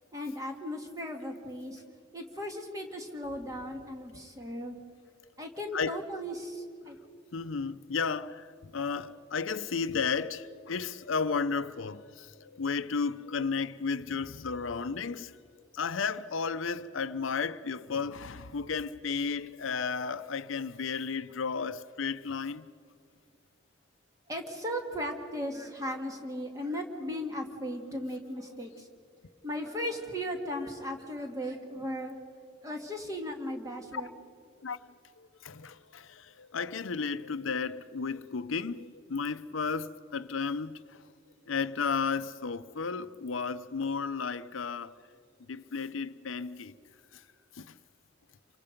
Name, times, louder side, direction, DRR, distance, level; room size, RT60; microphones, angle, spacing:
voice 1, 0.1-1.8 2.1-4.8 5.4-7.0 24.3-28.9 29.4-32.2 32.6-34.1, equal, 15° right, 1.9 m, -37 dB
voice 2, 7.3-15.4 15.7-22.7 28.5-28.6 33.9-34.0 34.6-34.8 35.2-41.0 41.5-45.0 45.4-46.7 47.1-47.2 47.5-47.8, left 5 dB, 85° left, 0.7 m, -33 dB
28.0 x 23.5 x 5.2 m
head